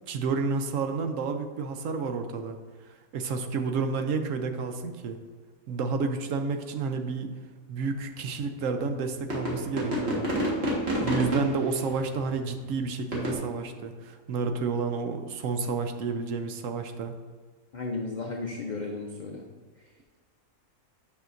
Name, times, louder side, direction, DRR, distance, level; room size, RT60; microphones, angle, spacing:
voice 1, 0.1-2.6 2.8-5.2 5.7-7.3 7.7-10.3 11.0-17.2, right 4 dB, 70° right, 7 dB, 0.9 m, -30 dB
sound 1, 8.4-8.5 9.3-12.2 12.6-12.7 13.1-13.4, equal, 45° right, 1.8 m, -28 dB
voice 2, 17.7-19.4, left 3 dB, 70° left, 2 dB, 0.4 m, -34 dB
8.6 x 5.7 x 2.6 m, 1.5 s
omnidirectional pair, 1.5 m